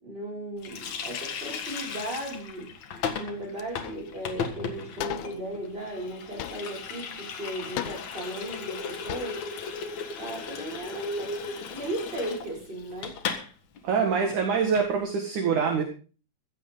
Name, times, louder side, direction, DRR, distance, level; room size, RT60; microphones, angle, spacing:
voice 1, 0.0-2.7 3.2-9.4 10.2-13.1, right 1 dB, 15° right, -3 dB, 6.3 m, -36 dB
Water tap faucet, 0.6-13.5 13.8-13.9 14.2-14.9, left 6 dB, 55° left, 2.5 m, -37 dB
sound 1, 3.6-4.1 4.4-4.5 5.0-5.5 6.4-7.1 7.8-8.4 8.8-8.9 9.1-9.5, left 12 dB, 85° left, 1.7 m, -37 dB
voice 2, 13.8-15.8, right 6 dB, 55° right, 2 dB, 3.1 m, -25 dB
15.0 x 14.5 x 3.9 m, 0.37 s
omnidirectional pair, 4.6 m